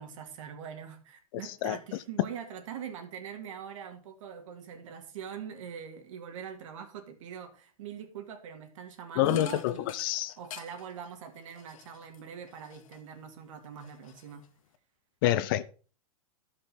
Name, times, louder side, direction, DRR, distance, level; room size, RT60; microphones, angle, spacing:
voice 1, 0.0-9.9 10.4-14.4, right 8 dB, 65° right, 2.0 m, -43 dB
sound 1, 9.2-13.2 13.6-14.8, left 10 dB, 70° left, 1.0 m, -48 dB
voice 2, 9.2-10.3 15.2-15.6, left 14 dB, 40° left, 0.4 m, -27 dB
12.0 x 5.4 x 4.1 m
supercardioid pair, 160°, 18 cm